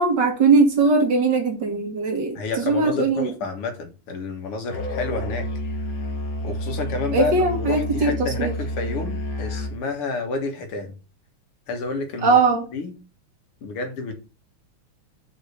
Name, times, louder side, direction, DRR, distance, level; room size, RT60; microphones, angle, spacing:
voice 1, 0.0-3.3 7.1-8.5 12.2-12.7, right 3 dB, 55° right, 2.3 m, -20 dB
voice 2, 2.4-5.5 6.4-10.9 11.7-12.4 12.7-12.9 13.6-14.1, left 3 dB, 90° left, 2.6 m, -29 dB
Musical instrument, 4.7-9.8, left 1 dB, 45° left, 1.7 m, -29 dB
5.6 x 5.3 x 6.5 m
omnidirectional pair, 2.4 m